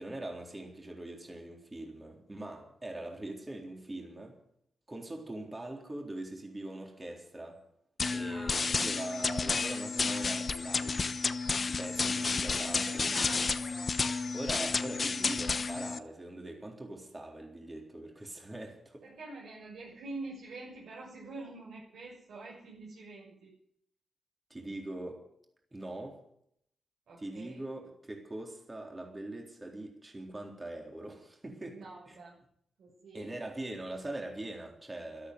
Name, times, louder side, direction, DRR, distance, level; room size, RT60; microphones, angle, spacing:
voice 1, 0.0-4.4 4.9-7.6 8.1-11.2 11.6-13.3 14.3-19.0 24.5-25.2 25.7-26.2 27.2-31.8 32.1-32.2 33.1-35.3, right 1 dB, 20° right, 1 dB, 3.9 m, -42 dB
sound 1, 8.0-16.0, left 4 dB, 40° left, 0.9 m, -31 dB
voice 2, 8.3-9.0 12.5-13.9 19.0-23.5 27.1-27.6 31.7-32.3 32.8-33.3, right 2 dB, 80° right, -5 dB, 6.2 m, -46 dB
13.5 x 13.0 x 8.1 m, 0.69 s
cardioid pair, 105°, 0 cm